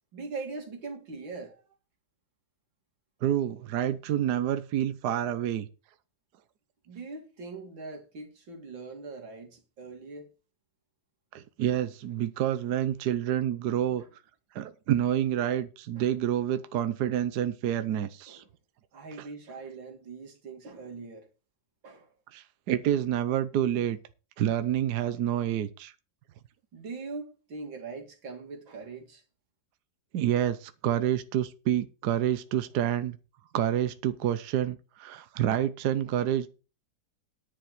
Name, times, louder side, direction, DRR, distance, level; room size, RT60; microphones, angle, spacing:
voice 1, 0.1-1.6 6.9-10.3 16.0-16.1 18.3-18.4 18.9-21.3 21.8-22.1 26.7-29.2, right 4 dB, 80° right, 3.2 m, -41 dB
voice 2, 3.2-5.7 11.3-14.0 14.5-18.4 22.3-24.0 24.4-25.9 30.1-33.2 33.5-36.5, right 11 dB, 65° right, 1.2 m, -28 dB
10.5 x 5.3 x 7.8 m
omnidirectional pair, 2.1 m